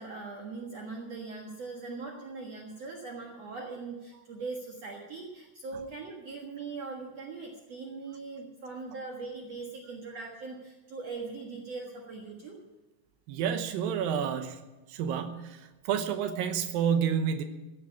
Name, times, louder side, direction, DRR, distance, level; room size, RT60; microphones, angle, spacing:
voice 1, 0.0-12.6, right 4 dB, 55° right, -1 dB, 2.5 m, -41 dB
voice 2, 13.3-14.6 14.9-15.6 15.9-17.4, right 8 dB, 80° right, 7 dB, 2.7 m, -29 dB
16.5 x 7.5 x 8.4 m, 1.1 s
omnidirectional pair, 4.0 m